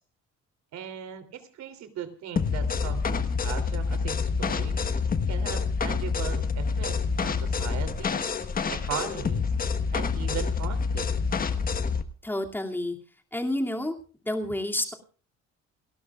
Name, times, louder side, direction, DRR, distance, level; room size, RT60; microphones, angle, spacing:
voice 1, 0.7-4.8 5.3-8.3 8.7-9.5 9.9-11.1, right 9 dB, 70° right, 9 dB, 3.1 m, -38 dB
sound 1, 2.4-12.0, left 5 dB, 30° left, 1.3 m, -27 dB
voice 2, 12.2-13.0 13.3-13.9 14.2-14.9, left 1 dB, 5° left, 2 dB, 2.5 m, -29 dB
29.0 x 12.5 x 2.4 m, 0.39 s
cardioid pair, 135°, 29 cm